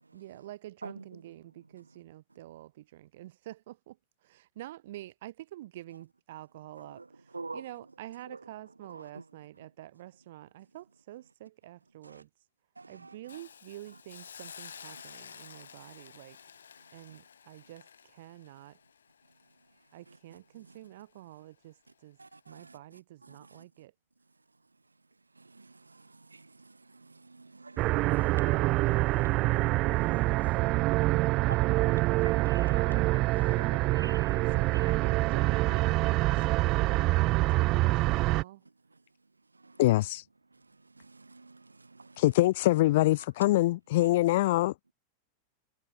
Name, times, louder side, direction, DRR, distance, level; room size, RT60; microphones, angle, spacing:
voice 1, 0.1-12.3 12.9-16.4 16.9-18.8 19.9-22.2 22.5-23.9 34.0-34.1 34.4-38.7, right 15 dB, 55° right, 4.8 m, -48 dB
voice 2, 12.8-13.1 22.2-22.7 23.4-23.5 25.4-34.6 34.9-35.4 39.6-39.8 41.0-42.2, right 3 dB, 80° right, 0.4 m, -48 dB
Hiss, 13.3-20.3 20.7-20.9, left 7 dB, 70° left, 7.5 m, -51 dB
sound 1, 27.8-38.4, right 20 dB, 40° right, 0.7 m, -26 dB
voice 3, 39.8-40.2 42.2-44.9, left 17 dB, 55° left, 0.7 m, -24 dB
figure-of-eight pair, 90°, 0 cm